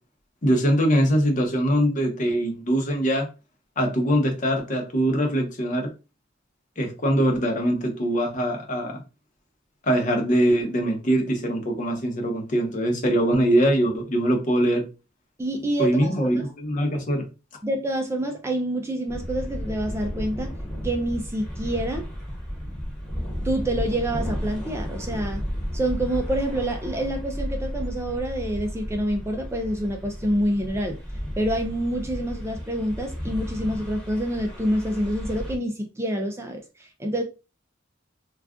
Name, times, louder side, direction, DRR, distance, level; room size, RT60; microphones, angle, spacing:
voice 1, 0.4-3.3 3.8-5.9 6.8-9.0 9.8-14.8 15.8-17.3, equal, 40° left, 0.8 m, -22 dB
voice 2, 15.4-16.3 17.6-20.5 20.8-22.0 23.4-25.4 25.7-31.0 31.4-37.2, right 1 dB, 15° right, 0.4 m, -27 dB
sound 1, 19.1-35.6, equal, 5° left, 1.0 m, -33 dB
2.3 x 2.3 x 3.6 m
head